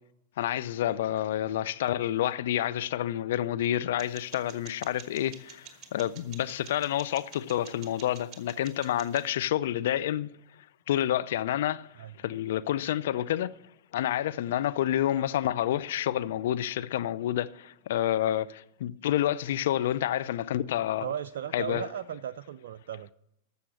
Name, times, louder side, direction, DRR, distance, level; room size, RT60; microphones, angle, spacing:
voice 1, 0.4-10.3 10.9-13.5 13.9-21.1 21.5-21.9, left 12 dB, 65° left, 0.6 m, -29 dB
sound 1, 4.0-9.3, right 8 dB, 35° right, 1.9 m, -50 dB
voice 2, 21.0-23.1, right 9 dB, 70° right, 0.4 m, -36 dB
13.5 x 7.0 x 6.6 m
hypercardioid pair, 100°, 0 cm